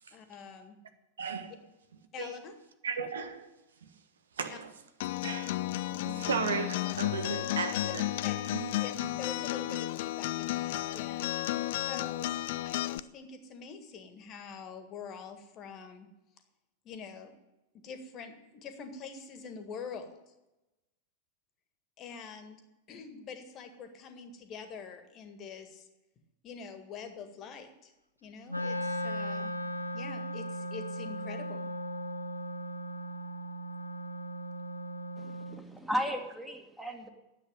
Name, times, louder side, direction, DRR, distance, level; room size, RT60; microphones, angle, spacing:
voice 1, 0.1-0.8 1.5-1.6 2.1-2.5 4.5-4.6 6.8-6.9 7.7-7.8 8.2-8.4 8.8-11.3 11.9-12.4 12.6-16.1 16.8-17.3 17.8-20.2 22.0-22.6 22.9-25.9 26.4-27.9 28.2-29.5 29.9-31.7, left 6 dB, 35° left, 1.7 m, -45 dB
voice 2, 1.2-1.5 2.2-2.3 2.8-3.5 3.8-3.9 4.4-4.7 5.2-5.6 5.9-8.1 8.5-8.7 10.9-11.0, right 6 dB, 65° right, 1.3 m, -35 dB
Acoustic guitar, 5.0-13.0, left 15 dB, 50° left, 0.4 m, -33 dB
Wind instrument woodwind instrument, 28.5-35.6, equal, 90° left, 0.8 m, -37 dB
voice 3, 35.2-37.1, equal, 5° right, 1.8 m, -35 dB
10.0 x 7.9 x 9.1 m
figure-of-eight pair, 90°, 0 cm